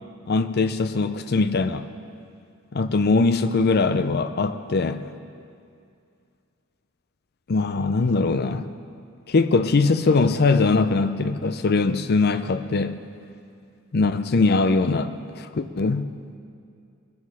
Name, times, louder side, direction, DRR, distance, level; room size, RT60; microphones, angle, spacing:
voice 1, 0.3-1.9 2.7-5.0 7.5-8.7 9.3-13.0 13.9-16.1, left 3 dB, 50° left, 10 dB, 0.5 m, -21 dB
20.0 x 7.1 x 4.7 m, 2.4 s
head